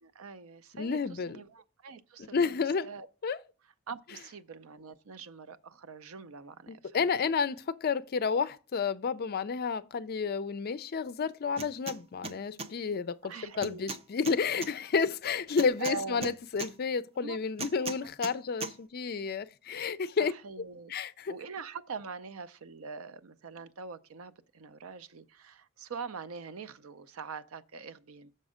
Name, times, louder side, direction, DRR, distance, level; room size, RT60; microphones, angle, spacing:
voice 1, 0.0-3.1 3.9-7.1 13.2-13.8 15.8-16.3 17.2-17.4 17.8-18.1 20.2-20.9 21.3-28.3, right 5 dB, 75° right, 0.5 m, -43 dB
voice 2, 0.7-1.4 2.2-2.9 3.2-3.4 6.7-20.3 20.9-21.3, left 5 dB, 45° left, 0.4 m, -31 dB
sound 1, 11.6-12.0 12.2-12.7 13.6-14.7 15.6-16.7 17.6-18.3 18.6-18.7, right 4 dB, 25° right, 0.5 m, -38 dB
6.6 x 5.2 x 4.9 m
head